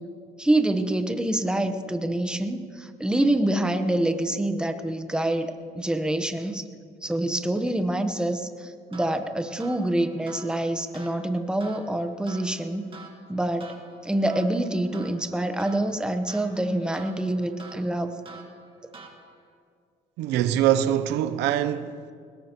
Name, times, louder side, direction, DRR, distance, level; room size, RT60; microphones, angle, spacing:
voice 1, 0.4-6.6 7.0-12.8 13.3-13.7 14.0-18.1, right 1 dB, 5° right, 1.0 m, -26 dB
sound 1, 8.9-19.5, right 3 dB, 30° right, 1.8 m, -48 dB
voice 2, 20.2-22.1, right 11 dB, 90° right, 0.7 m, -23 dB
20.5 x 18.5 x 3.0 m
cardioid pair, 110°, 17 cm